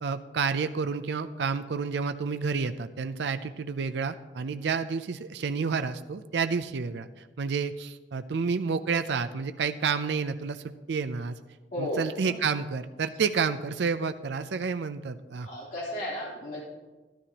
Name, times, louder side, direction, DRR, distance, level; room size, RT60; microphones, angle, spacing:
voice 1, 0.0-11.4 11.8-15.5, right 5 dB, 70° right, 10 dB, 0.4 m, -30 dB
voice 2, 11.7-12.0 15.4-16.6, left 1 dB, 45° left, -6 dB, 3.4 m, -33 dB
12.5 x 12.5 x 2.9 m, 1.2 s
head